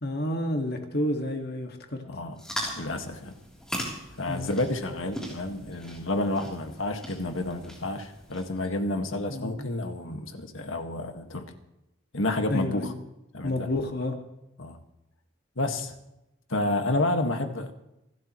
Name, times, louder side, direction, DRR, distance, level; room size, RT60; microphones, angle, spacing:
voice 1, 0.0-2.0 4.3-4.5 9.3-9.6 12.5-12.9 13.4-14.1, left 1 dB, 50° left, 3 dB, 1.9 m, -30 dB
voice 2, 2.0-2.4 2.7-3.3 4.2-11.5 12.1-12.9 13.3-13.7 14.6-14.8 15.6-15.9 16.5-17.7, left 2 dB, 80° left, 5 dB, 1.8 m, -30 dB
sound 1, 2.4-8.7, equal, 5° left, 3.4 m, -39 dB
27.0 x 13.0 x 3.2 m, 0.89 s
head